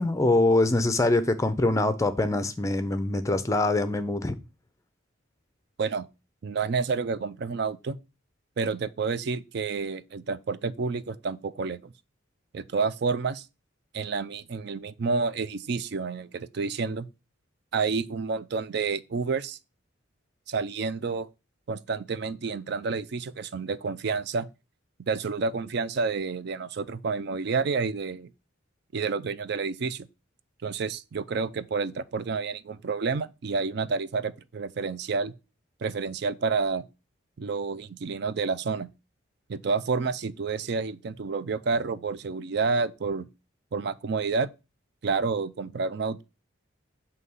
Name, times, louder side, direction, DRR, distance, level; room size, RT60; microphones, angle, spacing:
voice 1, 0.0-4.3, left 2 dB, 15° left, 0.5 m, -24 dB
voice 2, 6.4-8.0 8.6-11.9 12.5-13.5 13.9-17.1 17.7-19.6 20.5-21.3 21.7-24.5 25.1-28.3 28.9-30.1 30.6-35.3 35.8-36.8 37.4-38.9 39.5-43.3 43.7-44.5 45.0-46.2, right 4 dB, 55° right, 0.4 m, -29 dB
8.1 x 2.8 x 5.4 m
head